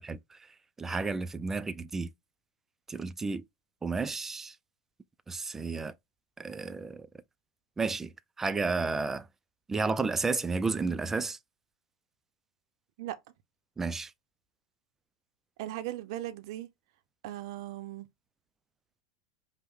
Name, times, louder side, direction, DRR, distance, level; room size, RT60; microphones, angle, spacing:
voice 1, 0.8-2.1 2.9-3.4 3.8-4.6 5.3-5.9 6.4-7.1 7.8-9.3 9.7-11.4 13.8-14.1, right 4 dB, 15° right, 0.4 m, -32 dB
voice 2, 15.6-16.7 17.2-18.1, right 14 dB, 65° right, 0.6 m, -38 dB
5.3 x 2.1 x 3.5 m
supercardioid pair, 120°, 3 cm